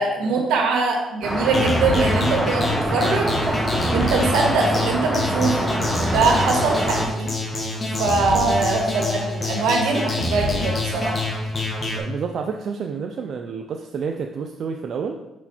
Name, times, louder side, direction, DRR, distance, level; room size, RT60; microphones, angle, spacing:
voice 1, 0.0-3.6 3.9-7.6 8.0-11.2, right 3 dB, 85° right, 1 dB, 1.6 m, -22 dB
Traffic noise roadway noise, 1.2-7.1, right 1 dB, 10° right, 1.2 m, -25 dB
sound 1, 1.5-12.0, left 2 dB, 35° left, 1.7 m, -26 dB
voice 2, 12.0-15.2, right 6 dB, 60° right, 4 dB, 0.5 m, -29 dB
6.2 x 5.5 x 4.4 m, 0.98 s
cardioid pair, 90°, 0 cm